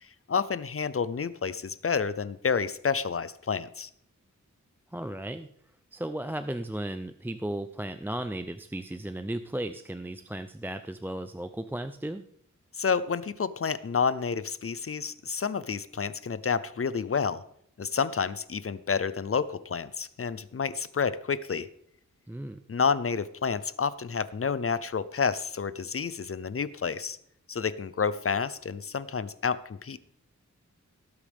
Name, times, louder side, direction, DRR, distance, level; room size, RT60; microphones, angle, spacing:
voice 1, 0.3-3.9 12.7-17.4 17.8-21.7 22.7-27.2 27.5-30.0, left 6 dB, 45° left, 15 dB, 0.6 m, -29 dB
voice 2, 4.9-5.5 5.9-12.2 22.3-22.6, right 1 dB, 5° right, 9 dB, 0.4 m, -35 dB
18.0 x 8.3 x 3.5 m, 0.68 s
wide cardioid pair, 95°, 31 cm